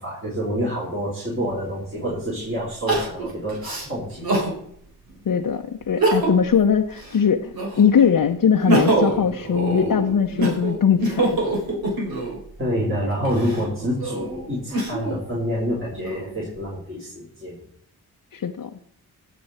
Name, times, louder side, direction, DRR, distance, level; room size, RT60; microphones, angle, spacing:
voice 1, 0.0-4.4 12.6-17.6, equal, 35° right, -6 dB, 4.3 m, -27 dB
Crying sobbing, 1.5-1.6 2.9-4.6 5.1-5.2 5.8-6.5 6.9-7.9 8.4-12.4 13.1-15.2 15.8-16.6, right 1 dB, 70° right, 3.5 m, -24 dB
voice 2, 5.3-7.5 7.8-11.5 18.3-18.7, left 7 dB, 60° left, 3 dB, 0.8 m, -20 dB
15.5 x 7.0 x 4.3 m, 0.67 s
cardioid pair, 45°, 38 cm